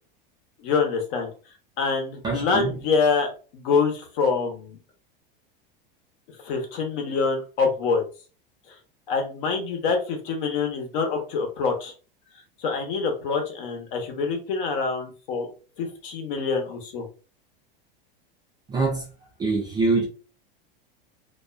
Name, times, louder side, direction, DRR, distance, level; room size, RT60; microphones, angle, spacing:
voice 1, 0.6-1.3 1.8-4.8 6.4-8.0 9.1-11.9 12.6-15.5 15.8-17.0, left 5 dB, 60° left, 0.9 m, -25 dB
voice 2, 2.2-2.7 18.7-19.0 19.4-20.1, right 3 dB, 15° right, 0.3 m, -24 dB
2.4 x 2.2 x 2.3 m
supercardioid pair, 140°, 29 cm